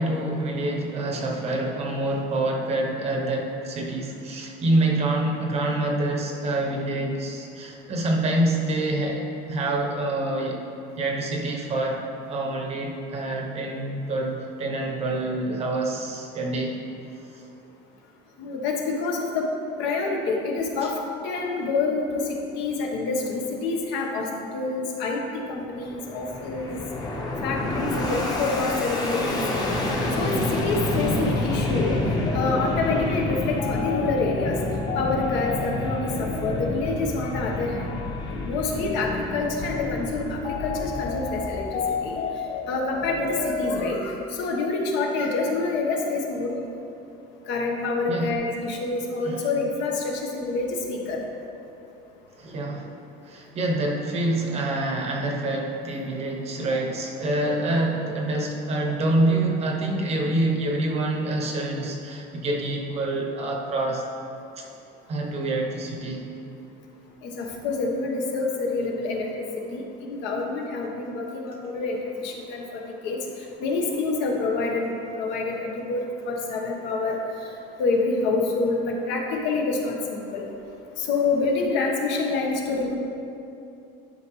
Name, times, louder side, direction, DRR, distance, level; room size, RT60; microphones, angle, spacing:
voice 1, 0.0-10.6 11.0-16.8 17.3-17.4 20.8-20.9 48.1-48.4 49.2-49.4 52.4-52.9 53.2-64.0 64.6-64.7 65.1-66.3, right 2 dB, 35° right, 1 dB, 0.8 m, -26 dB
voice 2, 18.4-19.5 19.8-21.0 21.2-25.2 25.5-26.8 27.4-29.7 30.2-32.0 32.3-34.6 34.9-37.9 38.4-42.2 42.7-46.6 47.5-51.2 67.2-69.5 69.7-73.2 73.6-74.9 75.1-77.2 77.8-80.4 81.0-83.0, left 3 dB, 70° left, 0 dB, 1.2 m, -27 dB
Fixed-wing aircraft airplane, 25.6-42.2, left 1 dB, 20° left, 0.9 m, -29 dB
sound 1, 32.2-44.0, left 4 dB, 35° left, 0.5 m, -32 dB
11.0 x 5.4 x 3.1 m, 2.7 s
cardioid pair, 170°, 19 cm